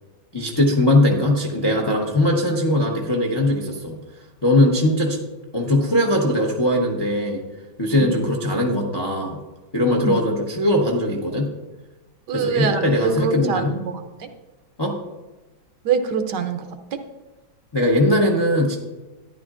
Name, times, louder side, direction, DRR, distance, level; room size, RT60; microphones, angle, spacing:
voice 1, 0.3-4.0 4.4-5.2 5.5-7.4 7.8-9.4 9.7-11.5 12.3-13.7 14.8-15.0 17.7-18.8, left 1 dB, 35° left, 0 dB, 0.4 m, -20 dB
voice 2, 12.3-14.3 15.8-16.7 16.9-17.0, right 6 dB, 70° right, 7 dB, 1.2 m, -24 dB
13.0 x 10.0 x 2.5 m, 1.1 s
omnidirectional pair, 2.1 m